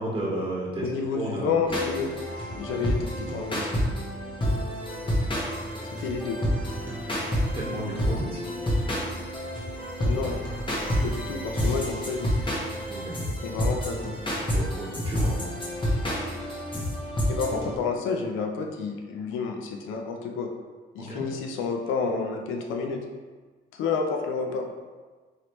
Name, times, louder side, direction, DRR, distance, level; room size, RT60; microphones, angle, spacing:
voice 1, 0.0-0.8 1.1-1.5 7.5-8.4 12.9-13.1 14.5-15.3 21.0-21.2, right 1 dB, 30° right, -5 dB, 1.5 m, -32 dB
voice 2, 0.8-2.1 2.5-3.8 6.0-6.4 10.0-10.4 11.0-12.3 13.4-14.1 17.3-20.5 20.9-23.0 23.7-24.7, left 5 dB, 90° left, 3 dB, 0.6 m, -30 dB
sound 1, 1.6-17.7, equal, 25° left, 1.2 m, -29 dB
4.8 x 3.1 x 3.0 m, 1.4 s
cardioid pair, 90°, 20 cm